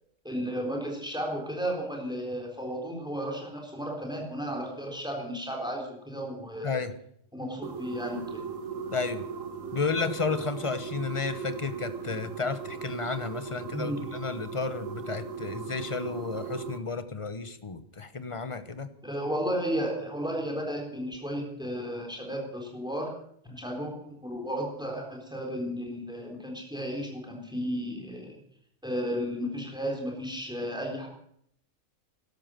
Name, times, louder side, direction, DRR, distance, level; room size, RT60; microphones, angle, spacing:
voice 1, 0.2-6.8 7.3-8.4 13.7-14.0 19.0-23.1 23.5-28.4 28.8-31.1, equal, 5° right, 1 dB, 3.8 m, -33 dB
sound 1, 7.6-16.8, right 6 dB, 85° right, 1.7 m, -38 dB
voice 2, 8.9-9.3 9.7-18.9 23.5-23.6, left 4 dB, 25° left, 12 dB, 1.0 m, -32 dB
13.5 x 12.0 x 7.7 m, 0.70 s
omnidirectional pair, 1.3 m